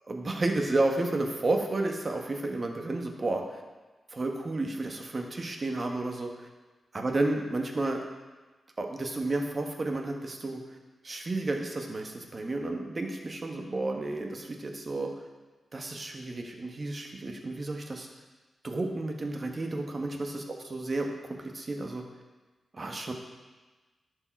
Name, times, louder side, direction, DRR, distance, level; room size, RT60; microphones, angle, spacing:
voice 1, 0.1-3.6 4.1-6.5 6.9-8.0 8.8-10.8 11.0-15.1 15.7-18.1 18.6-21.1 21.4-22.0 22.7-23.1, right 2 dB, 45° right, 3 dB, 1.3 m, -31 dB
10.5 x 5.0 x 4.6 m, 1.2 s
supercardioid pair, 40°, 0 cm